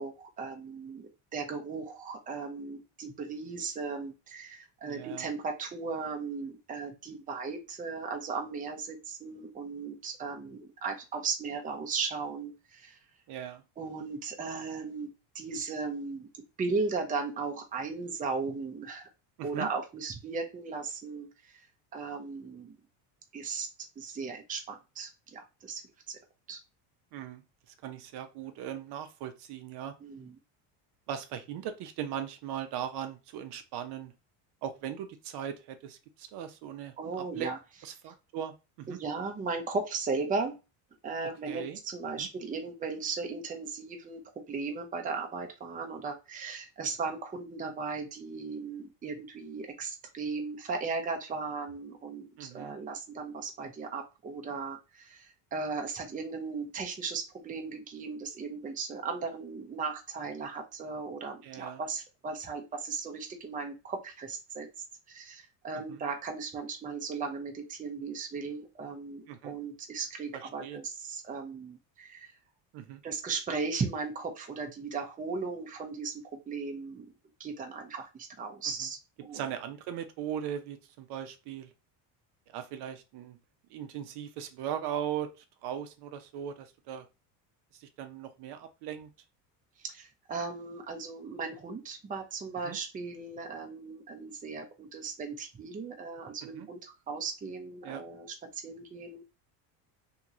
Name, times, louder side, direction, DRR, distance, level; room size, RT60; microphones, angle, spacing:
voice 1, 0.0-13.0 13.8-16.3 16.6-19.1 19.4-21.6 21.9-22.8 23.3-23.7 24.0-25.8 26.1-26.2 26.5-26.6 30.0-30.4 37.0-37.6 38.9-40.6 41.0-44.2 44.5-64.7 65.1-72.3 73.0-77.1 77.4-79.4 89.8-99.3, right 4 dB, 20° right, 3 dB, 0.6 m, -37 dB
voice 2, 4.8-5.3 13.3-13.6 19.4-19.7 27.1-27.4 27.8-29.9 31.1-34.1 34.6-36.9 37.3-37.5 37.8-39.0 41.4-41.8 42.2-42.3 52.4-52.7 61.4-61.8 65.7-66.0 69.3-69.5 70.3-70.8 72.7-73.0 79.3-81.7 82.5-83.4 83.7-85.3 85.6-87.1 87.7-89.1 92.6-92.8 96.5-96.7 97.8-98.0, right 9 dB, 60° right, 8 dB, 0.6 m, -39 dB
2.9 x 2.8 x 2.4 m, 0.28 s
supercardioid pair, 110°, 46 cm